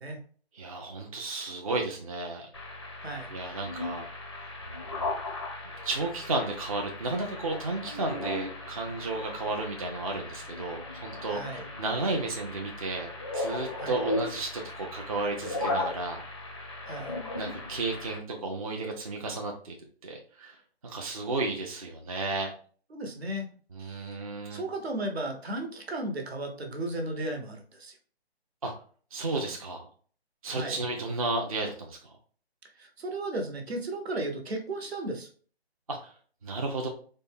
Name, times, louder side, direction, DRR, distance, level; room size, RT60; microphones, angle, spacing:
voice 1, 0.5-2.5 3.3-4.0 4.3-4.6 5.8-16.2 17.4-19.8 20.0-22.5 23.7-24.6 28.6-28.7 29.1-29.9 30.4-32.1 35.9-36.1 36.4-36.9, right 2 dB, 35° right, 2 dB, 0.4 m, -33 dB
sound 1, 2.5-18.2, left 2 dB, 25° left, 0.4 m, -37 dB
voice 2, 3.0-3.3 11.3-11.7 13.8-14.0 16.9-17.1 22.9-23.5 23.8-24.2 24.5-28.0 30.5-30.8 32.8-35.3, right 1 dB, 70° right, 4 dB, 1.1 m, -35 dB
4.1 x 2.2 x 3.4 m, 0.43 s
hypercardioid pair, 160°, 32 cm